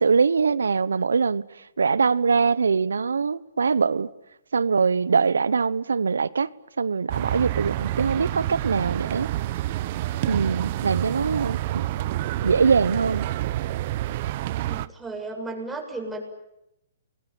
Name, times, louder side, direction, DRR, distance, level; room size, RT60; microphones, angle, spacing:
voice 1, 0.0-4.1 4.5-6.5 6.8-9.3 10.3-11.8 12.4-13.3, right 5 dB, 85° right, 1.0 m, -23 dB
sound 1, 7.1-14.9, right 14 dB, 45° right, 1.0 m, -28 dB
voice 2, 14.6-16.2, right 2 dB, 5° right, 7.5 m, -34 dB
29.5 x 22.0 x 8.9 m
hypercardioid pair, 130°, 0 cm